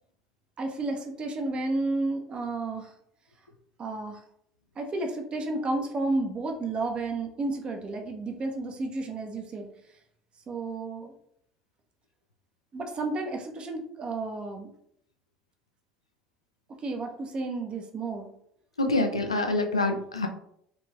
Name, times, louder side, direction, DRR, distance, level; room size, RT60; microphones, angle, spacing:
voice 1, 0.6-2.9 3.8-4.2 4.8-9.7 10.5-11.1 12.7-14.7 16.8-18.3, right 2 dB, 35° right, 4 dB, 0.6 m, -32 dB
voice 2, 18.8-20.3, left 2 dB, 90° left, 5 dB, 0.3 m, -26 dB
2.9 x 2.9 x 2.3 m, 0.70 s
figure-of-eight pair, 65°, 3 cm